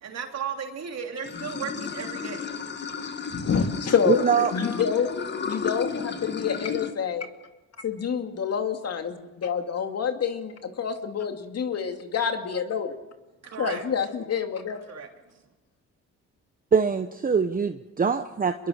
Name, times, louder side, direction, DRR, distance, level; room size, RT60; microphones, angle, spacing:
voice 1, 0.0-2.5 13.4-13.8 14.9-15.4, right 7 dB, 60° right, 4 dB, 3.3 m, -35 dB
Water / Sink (filling or washing), 1.2-6.9, left 5 dB, 35° left, 1.9 m, -33 dB
voice 2, 3.3-5.1 5.5-7.2 7.8-9.1 9.4-13.0 13.6-14.8, left 7 dB, 55° left, 5 dB, 2.6 m, -27 dB
voice 3, 4.1-4.5 16.7-18.7, right 6 dB, 30° right, 8 dB, 1.0 m, -23 dB
25.5 x 21.5 x 6.5 m, 1.1 s
cardioid pair, 90°, 30 cm